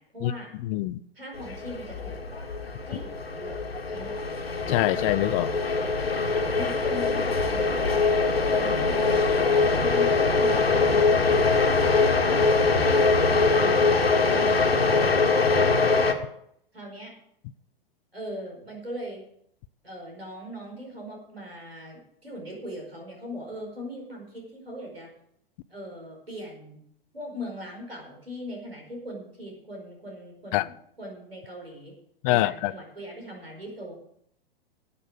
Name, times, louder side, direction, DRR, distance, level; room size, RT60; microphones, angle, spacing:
voice 1, 0.0-0.5 1.1-3.6 3.9-4.4 5.3-5.8 6.2-8.1 8.5-11.9 16.7-17.1 18.1-19.2 19.8-25.1 25.7-26.8 27.1-30.7 31.0-31.9 32.3-33.9, equal, 90° right, 5.1 m, -40 dB
voice 2, 0.6-1.0 4.7-5.5 30.5-30.7 32.2-32.7, left 17 dB, 35° left, 0.5 m, -24 dB
sound 1, 1.3-16.1, left 4 dB, 85° left, 1.6 m, -23 dB
12.5 x 8.6 x 6.4 m
figure-of-eight pair, 100°, 29 cm